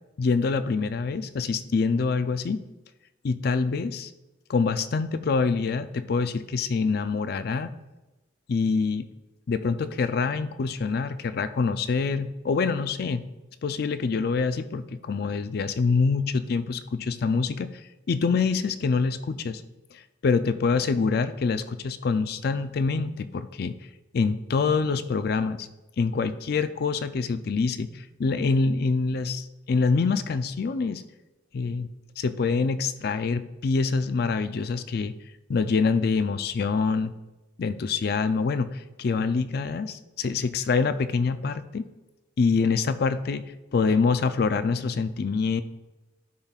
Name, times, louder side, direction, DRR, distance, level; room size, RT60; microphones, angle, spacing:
voice 1, 0.2-2.6 3.2-4.1 4.5-7.7 8.5-9.1 9.5-13.2 13.6-17.8 18.1-19.6 19.9-23.7 24.1-25.7 26.0-31.0 31.5-31.9 32.2-35.1 35.5-37.1 37.6-41.8 42.4-43.4 43.7-45.6, left 4 dB, 55° left, 11 dB, 0.4 m, -25 dB
12.0 x 5.7 x 2.4 m, 1.1 s
head